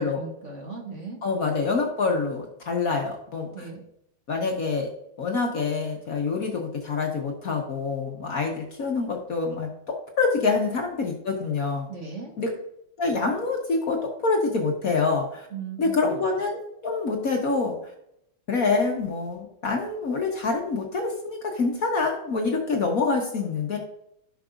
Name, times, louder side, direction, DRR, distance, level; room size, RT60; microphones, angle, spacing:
voice 1, 0.0-1.2 3.5-3.8 11.9-12.3 15.5-16.2, right 5 dB, 40° right, 0 dB, 1.6 m, -37 dB
voice 2, 1.2-3.7 4.3-4.9 5.2-11.9 12.4-12.5 13.0-15.5 15.8-17.7 18.5-23.8, left 4 dB, 50° left, 1 dB, 1.5 m, -26 dB
15.5 x 6.0 x 2.6 m, 0.77 s
omnidirectional pair, 2.2 m